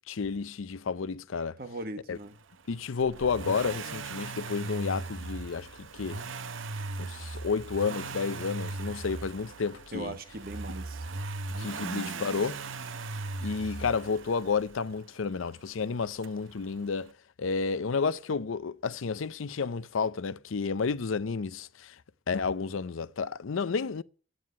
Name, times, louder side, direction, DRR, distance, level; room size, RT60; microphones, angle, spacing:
voice 1, 0.1-1.6 2.1-2.2 2.7-6.2 7.0-10.1 11.6-12.6 13.4-17.1 17.4-22.0 22.3-24.0, left 5 dB, 85° left, 0.6 m, -31 dB
voice 2, 1.6-2.4 9.9-11.1 11.8-12.4, right 1 dB, 45° right, 1.4 m, -40 dB
Accelerating revving vroom, 3.0-14.9 16.2-16.3, right 3 dB, 80° right, 0.8 m, -38 dB
9.3 x 9.2 x 9.5 m
head